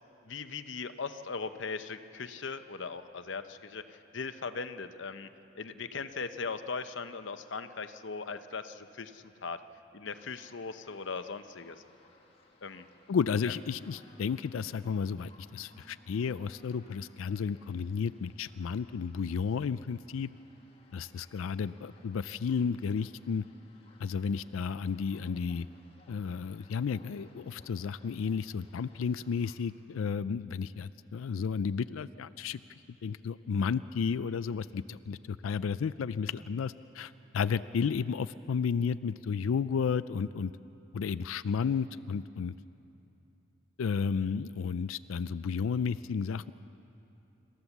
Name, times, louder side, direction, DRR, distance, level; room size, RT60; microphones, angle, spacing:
voice 1, 0.2-5.3 5.6-9.6 9.9-11.8 12.6-12.8 13.4-13.6, left 4 dB, 70° left, 10 dB, 0.8 m, -39 dB
sound 1, 10.1-29.6, left 2 dB, 30° left, 1.6 m, -62 dB
voice 2, 13.1-20.3 20.9-23.4 24.0-25.7 26.1-32.6 33.0-40.5 40.9-42.5 43.8-46.5, left 6 dB, 90° left, 15 dB, 0.4 m, -32 dB
26.5 x 14.0 x 7.2 m, 2.8 s
head